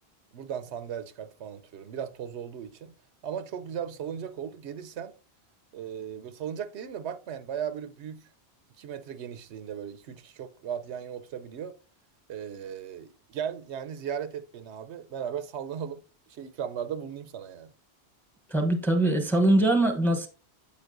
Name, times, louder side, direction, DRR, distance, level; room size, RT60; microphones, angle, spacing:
voice 1, 0.3-2.9 3.2-5.1 5.7-8.3 8.8-11.8 12.3-17.7, right 8 dB, 85° right, 1.0 m, -37 dB
voice 2, 18.5-20.3, right 1 dB, ahead, 0.7 m, -22 dB
9.5 x 7.1 x 2.5 m
omnidirectional pair, 1.1 m